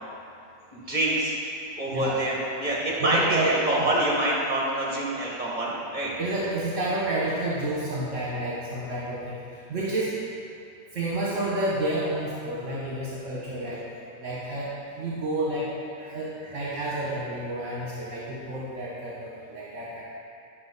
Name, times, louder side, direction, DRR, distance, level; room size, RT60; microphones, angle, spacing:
voice 1, 0.7-1.3 1.8-6.1, right 1 dB, 30° right, -5 dB, 1.9 m, -26 dB
voice 2, 1.9-2.2 3.0-3.5 6.2-10.2 10.9-13.8 14.2-15.7 16.0-20.0, right 1 dB, 60° right, -6 dB, 1.4 m, -30 dB
10.5 x 6.0 x 4.0 m, 2.5 s
omnidirectional pair, 1.4 m